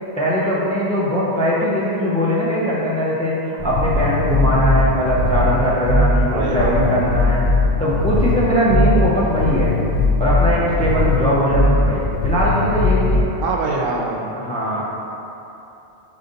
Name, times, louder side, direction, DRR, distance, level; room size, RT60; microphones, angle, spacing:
voice 1, 0.2-7.5 7.8-9.7 10.2-13.2 14.3-14.8, equal, 10° left, -7 dB, 0.4 m, -20 dB
sound 1, 3.6-13.2, left 2 dB, 90° left, 0.9 m, -19 dB
voice 2, 6.3-7.1 13.4-14.2, right 3 dB, 70° right, -1 dB, 0.7 m, -24 dB
5.1 x 2.6 x 3.9 m, 2.9 s
omnidirectional pair, 1.0 m